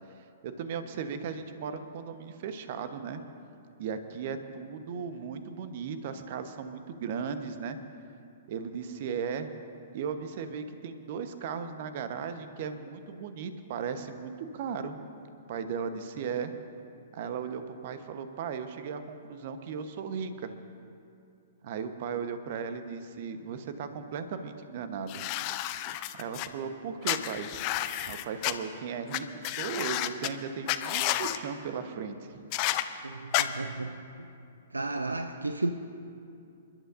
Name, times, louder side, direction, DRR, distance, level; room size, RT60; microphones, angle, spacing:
voice 1, 0.4-3.2 3.8-7.8 8.5-9.5 9.9-15.0 15.5-16.5 17.1-20.5 21.6-25.2 26.2-27.5 28.1-32.4, right 6 dB, 45° right, 8 dB, 1.1 m, -36 dB
sound 1, 25.1-26.5 27.0-28.5 29.1-29.2 29.4-30.3 30.7-31.4 32.5-32.8 33.3-33.4, left 15 dB, 35° left, 0.6 m, -30 dB
voice 2, 33.0-34.0 34.7-35.7, right 2 dB, 85° right, 8 dB, 0.6 m, -33 dB
28.5 x 12.0 x 2.7 m, 2.5 s
figure-of-eight pair, 115°, 0 cm